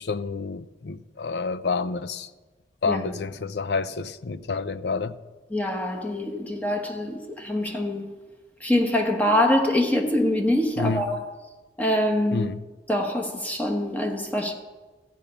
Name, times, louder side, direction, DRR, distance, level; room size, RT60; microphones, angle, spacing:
voice 1, 0.0-2.3 2.8-5.2 10.8-11.0 12.3-12.6, left 4 dB, 65° left, 0.5 m, -29 dB
voice 2, 2.9-3.2 5.5-8.1 8.6-11.2 11.8-12.5 12.9-14.5, left 1 dB, 10° left, 1.2 m, -24 dB
14.0 x 5.3 x 8.7 m
head